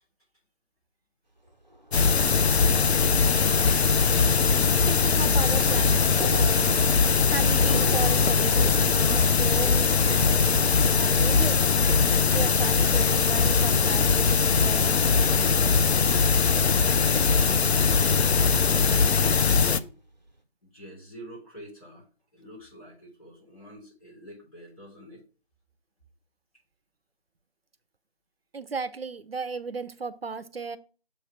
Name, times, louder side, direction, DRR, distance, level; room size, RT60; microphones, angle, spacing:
Thunder, 1.4-20.3, right 2 dB, 45° right, 1.1 m, -43 dB
sound 1, 1.9-19.8, left 5 dB, 90° left, 0.6 m, -21 dB
sound 2, 2.7-17.4, right 2 dB, 10° left, 1.8 m, -46 dB
voice 1, 4.9-6.8 7.3-10.4 10.8-11.7 12.3-16.0 28.5-30.8, right 4 dB, 70° right, 13 dB, 0.6 m, -36 dB
voice 2, 16.8-17.7 18.2-19.9 20.6-22.1 22.3-25.2, equal, 35° left, -3 dB, 3.2 m, -45 dB
7.2 x 3.2 x 5.7 m, 0.36 s
figure-of-eight pair, 175°, 31 cm